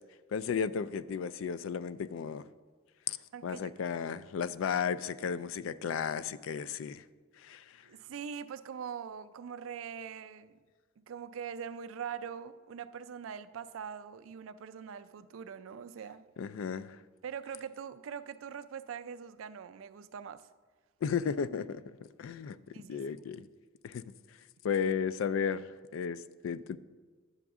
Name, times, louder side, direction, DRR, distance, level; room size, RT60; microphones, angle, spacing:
voice 1, 0.3-2.4 3.1-3.2 3.4-7.0 7.4-7.6 16.4-17.0 21.0-22.6 22.9-23.5 23.8-24.0 24.6-26.8, left 6 dB, 70° left, 0.3 m, -34 dB
voice 2, 3.3-3.7 7.8-10.5 11.0-16.2 17.2-20.5 22.7-23.0, right 7 dB, 75° right, 0.4 m, -42 dB
9.9 x 6.9 x 3.6 m
head